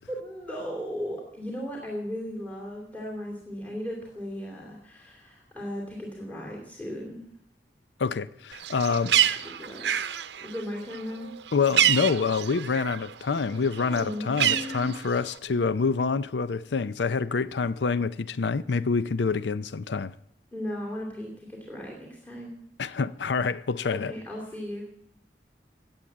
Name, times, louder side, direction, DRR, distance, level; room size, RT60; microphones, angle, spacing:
voice 1, 0.1-7.3 9.1-9.2 9.5-9.9 10.4-11.3 13.8-14.9 20.5-22.6 23.9-24.8, equal, 10° left, 2.7 m, -36 dB
voice 2, 8.0-9.1 11.5-20.1 22.8-24.1, left 5 dB, 85° left, 0.5 m, -27 dB
Bird, 8.5-13.1 13.4-15.4, right 10 dB, 80° right, 0.7 m, -27 dB
16.5 x 8.8 x 7.3 m
head